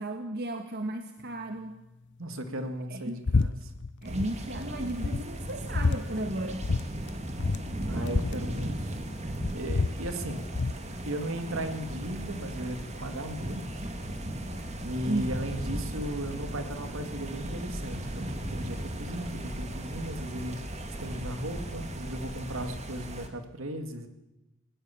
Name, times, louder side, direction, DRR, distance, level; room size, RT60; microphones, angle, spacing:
voice 1, 0.0-1.8 2.9-3.2 4.0-6.7 15.1-15.5, right 1 dB, 50° right, 6 dB, 1.6 m, -34 dB
voice 2, 2.2-3.7 7.9-9.0 9.5-10.4 11.1-13.6 14.8-20.6 21.0-24.1, right 1 dB, 70° right, 8 dB, 2.3 m, -36 dB
sound 1, 3.3-3.5 3.8-4.3 4.7-4.8 5.0-6.0 6.6-6.8 7.1-7.2 7.4-9.1 9.4-10.8, left 3 dB, 60° left, 0.7 m, -28 dB
sound 2, 4.0-23.3, right 1 dB, 35° right, 2.3 m, -37 dB
20.0 x 18.5 x 7.2 m, 0.96 s
head